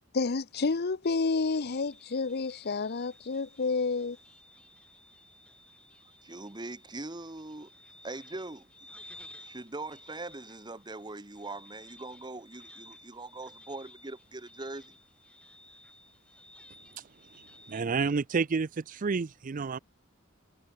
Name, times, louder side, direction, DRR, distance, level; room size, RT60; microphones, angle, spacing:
voice 1, 0.1-4.2, left 4 dB, 50° left, 0.7 m, -29 dB
sound 1, 1.0-17.8, left 1 dB, 5° left, 1.9 m, -55 dB
voice 2, 6.2-7.7 8.0-8.7 9.4-14.9, right 2 dB, 20° right, 1.2 m, -41 dB
voice 3, 17.7-19.8, right 4 dB, 40° right, 0.5 m, -29 dB
head